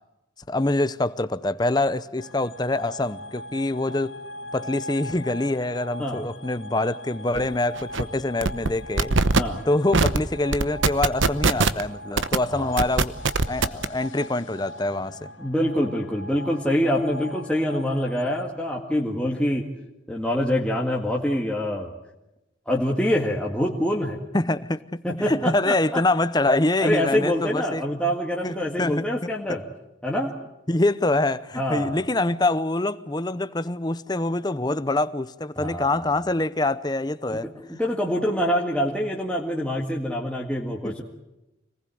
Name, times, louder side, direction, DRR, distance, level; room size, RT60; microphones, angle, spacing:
voice 1, 0.5-4.2 4.5-9.2 9.7-13.2 13.5-15.3 24.3-27.8 28.4-29.6 30.7-37.5 40.8-41.0, left 2 dB, 20° left, 0.7 m, -25 dB
sound 1, 2.2-18.5, left 1 dB, 80° left, 2.3 m, -41 dB
sound 2, 7.3-7.5 7.8-8.0 8.4-8.7 9.0-9.4 9.9-10.2 10.5-11.8 12.2-12.4 12.8-13.8, right 3 dB, 80° right, 1.0 m, -20 dB
voice 2, 15.4-19.7 20.1-21.9 22.7-24.2 25.0-26.0 26.8-29.6 30.0-30.3 31.6-32.0 35.6-36.0 37.3-41.0, equal, 5° left, 1.9 m, -25 dB
26.0 x 19.5 x 7.8 m
head